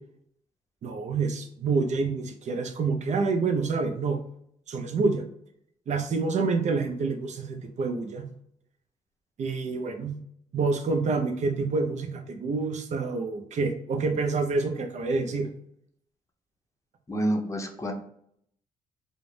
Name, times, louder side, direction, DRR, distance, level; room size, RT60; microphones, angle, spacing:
voice 1, 0.8-4.2 4.7-5.2 5.9-8.2 9.4-10.1 10.5-15.5, right 4 dB, 50° right, 6 dB, 0.5 m, -27 dB
voice 2, 17.1-17.9, right 1 dB, 20° left, 2 dB, 0.6 m, -28 dB
2.4 x 2.1 x 3.2 m, 0.69 s
supercardioid pair, 60°, 15 cm